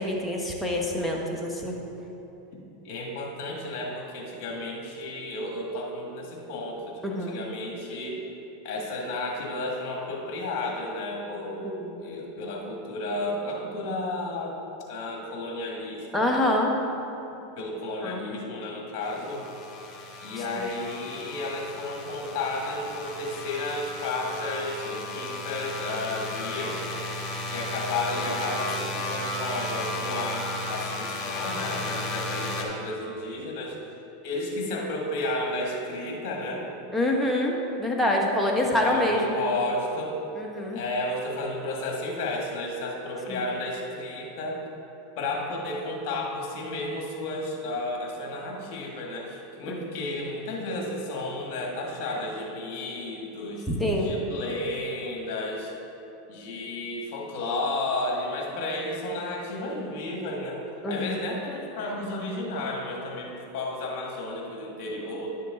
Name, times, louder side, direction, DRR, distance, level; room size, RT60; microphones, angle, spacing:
voice 1, 0.0-1.8 7.0-7.4 11.6-12.0 16.1-16.7 18.0-18.2 20.6-20.7 36.9-37.5 37.8-39.5 40.4-40.8 43.3-43.4 49.7-49.8 53.7-54.1 60.8-61.2, left 1 dB, 5° left, -1 dB, 1.4 m, -26 dB
voice 2, 2.8-8.2 8.6-14.6 14.9-16.4 17.5-19.5 20.2-26.9 27.5-33.8 34.2-36.7 38.6-40.2 40.7-44.6 45.2-53.7 54.0-55.7 56.3-65.3, left 2 dB, 55° left, -1 dB, 1.8 m, -32 dB
sound 1, 19.0-32.6, left 1 dB, 35° left, 1.6 m, -34 dB
10.5 x 6.6 x 3.9 m, 3.0 s
hypercardioid pair, 105°, 0 cm